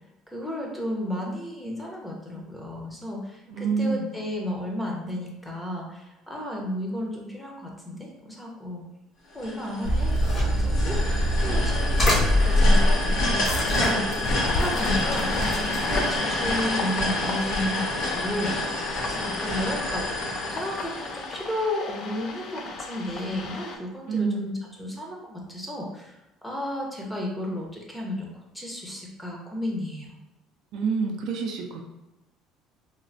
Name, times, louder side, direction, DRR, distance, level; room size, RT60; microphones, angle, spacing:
voice 1, 0.3-8.8 9.3-14.1 14.5-15.3 15.6-18.6 19.1-20.2 20.5-28.3 28.5-30.1, left 1 dB, 5° left, -1 dB, 0.7 m, -33 dB
voice 2, 3.5-4.1 24.1-24.5 30.7-31.8, right 4 dB, 65° right, 2 dB, 0.4 m, -27 dB
sound 1, 9.4-21.5, left 1 dB, 70° left, 1.0 m, -28 dB
sound 2, 9.8-16.2, left 1 dB, 35° left, 1.1 m, -24 dB
sound 3, 14.2-23.8, left 3 dB, 50° left, 0.4 m, -34 dB
3.1 x 2.1 x 2.6 m, 0.99 s
cardioid pair, 105°, 0 cm